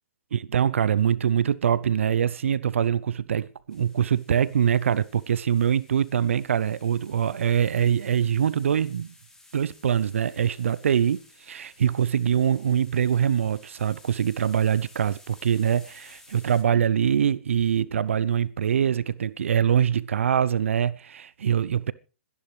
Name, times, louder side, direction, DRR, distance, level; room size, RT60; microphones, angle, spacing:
voice 1, 0.3-9.1 9.5-21.9, right 8 dB, 75° right, 0.6 m, -24 dB
sound 1, 3.7-16.6, left 2 dB, 5° left, 3.2 m, -55 dB
26.5 x 11.0 x 3.3 m
hypercardioid pair, 115°, 7 cm